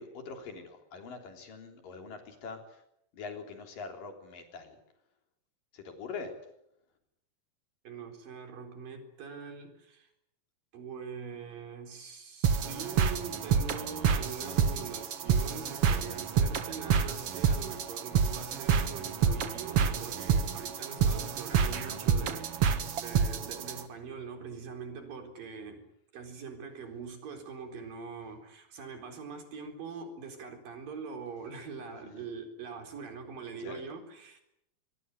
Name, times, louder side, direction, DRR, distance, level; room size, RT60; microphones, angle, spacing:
voice 1, 0.0-2.8 3.1-4.8 5.7-6.4 32.0-32.3 33.6-33.8, left 4 dB, 70° left, 5 dB, 5.1 m, -43 dB
voice 2, 7.8-10.1 10.7-25.9 26.1-34.4, right 5 dB, 70° right, 5 dB, 5.7 m, -43 dB
sound 1, 12.4-23.8, right 7 dB, 50° right, 2.1 m, -28 dB
24.0 x 22.0 x 9.4 m, 0.79 s
omnidirectional pair, 4.1 m